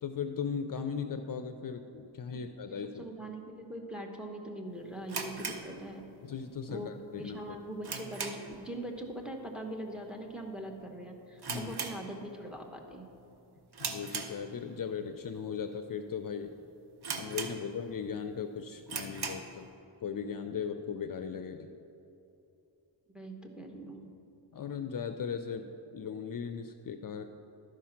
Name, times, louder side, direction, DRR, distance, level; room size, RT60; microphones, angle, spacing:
voice 1, 0.0-3.0 6.2-7.6 11.5-11.8 13.8-16.5 17.2-19.7 20.0-21.7 24.5-27.2, left 6 dB, 55° left, 8 dB, 0.5 m, -38 dB
voice 2, 2.7-6.0 6.7-6.9 7.2-13.1 23.1-24.2, right 1 dB, ahead, 1 dB, 1.0 m, -42 dB
sound 1, 5.1-6.4 6.7-6.8 7.3-8.7 9.0-9.3 9.5-9.6 10.3-10.6 10.9-11.0 11.4-12.6 12.9-13.2 13.7-14.9 15.4-15.5 16.1-16.2 16.5-16.6 17.0-18.0 18.4-18.5 18.8-19.6, right 5 dB, 65° right, 0.9 m, -39 dB
12.0 x 5.0 x 5.8 m, 2.8 s
wide cardioid pair, 90°, 42 cm